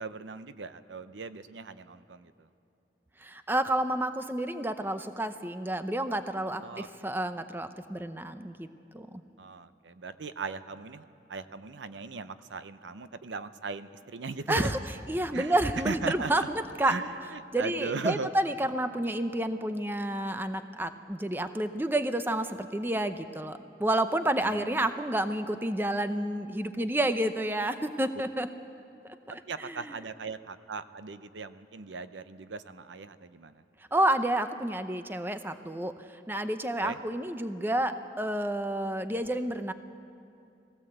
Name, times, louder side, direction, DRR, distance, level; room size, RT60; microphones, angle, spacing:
voice 1, 0.0-2.3 6.6-6.9 9.4-11.0 11.3-14.7 15.3-16.5 16.8-18.3 24.4-24.8 29.5-33.6 36.8-37.0, right 4 dB, 80° right, 12 dB, 0.7 m, -38 dB
voice 2, 3.2-8.7 8.9-9.2 14.5-14.8 15.1-16.9 17.5-28.5 29.3-30.0 33.9-35.9 36.3-39.7, right 1 dB, 10° right, 9 dB, 0.6 m, -30 dB
20.0 x 16.5 x 7.9 m, 2.8 s
head